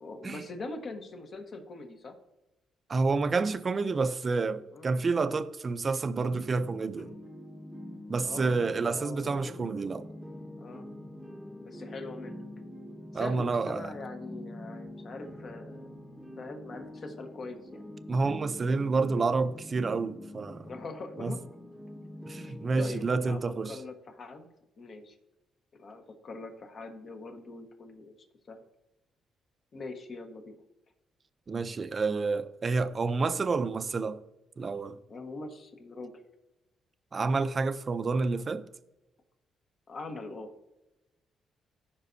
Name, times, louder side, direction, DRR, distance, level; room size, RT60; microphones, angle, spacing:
voice 1, 0.0-2.2 4.7-4.9 6.9-7.2 8.2-10.2 10.6-10.9 11.6-12.4 13.1-15.9 16.4-17.8 19.1-19.3 20.6-21.4 22.4-24.5 24.8-25.2 25.8-28.2 28.5-28.7 29.7-30.6 35.1-36.1 39.9-40.5, left 3 dB, 50° left, 1.3 m, -42 dB
voice 2, 2.9-7.1 8.1-10.0 13.1-13.9 18.1-20.7 21.2-21.3 22.3-23.8 31.5-34.2 34.6-35.0 37.1-38.7, right 4 dB, 35° right, 0.5 m, -29 dB
sound 1, 6.3-23.3, left 1 dB, ahead, 0.9 m, -45 dB
15.5 x 5.2 x 2.7 m
cardioid pair, 90°, 0 cm